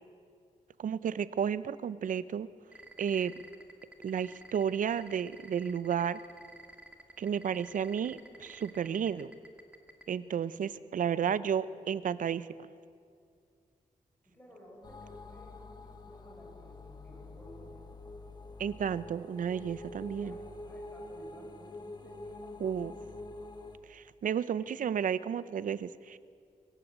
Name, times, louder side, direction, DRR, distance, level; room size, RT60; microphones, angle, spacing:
voice 1, 0.8-2.5 3.0-3.3 4.0-6.2 7.2-9.3 10.1-12.5 18.6-20.3 22.6-22.9 23.9-26.2, right 8 dB, 75° right, 16 dB, 0.7 m, -32 dB
sound 1, 2.7-10.0, right 2 dB, 10° right, 2.1 m, -50 dB
voice 2, 14.3-17.9 20.0-23.4, equal, 15° left, -3 dB, 7.2 m, -55 dB
sound 2, 14.8-23.8, left 2 dB, 30° left, 1.4 m, -46 dB
23.5 x 16.0 x 8.2 m, 2.3 s
wide cardioid pair, 130°, 14 cm